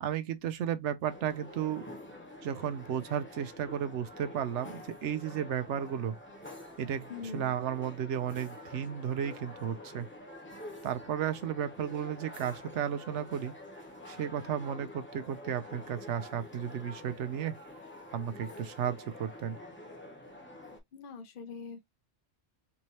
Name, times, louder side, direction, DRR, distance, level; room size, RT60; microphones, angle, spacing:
voice 1, 0.0-1.8 2.4-6.1 6.8-10.1 10.8-13.5 14.1-17.5 18.1-19.6, right 9 dB, 75° right, 0.9 m, -34 dB
sound 1, 1.0-20.8, left 1 dB, 10° left, 1.0 m, -48 dB
voice 2, 7.1-7.5 20.9-21.9, left 5 dB, 55° left, 0.8 m, -43 dB
3.5 x 3.1 x 2.8 m
omnidirectional pair, 1.2 m